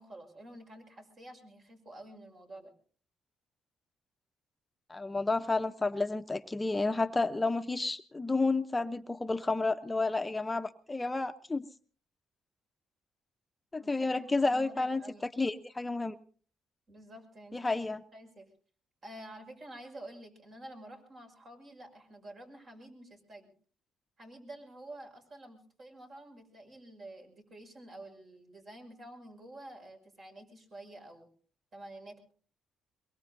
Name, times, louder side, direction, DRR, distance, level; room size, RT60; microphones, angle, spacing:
voice 1, 0.0-2.7 13.8-15.3 16.9-17.8 18.1-18.5 19.0-23.5 24.2-31.3 31.7-32.2, right 1 dB, 50° right, 3 dB, 6.0 m, -49 dB
voice 2, 4.9-11.7 13.7-15.0 15.4-16.2 17.5-18.0, left 3 dB, 15° left, 8 dB, 0.7 m, -31 dB
23.0 x 23.0 x 2.6 m, 0.43 s
cardioid pair, 90°, 0 cm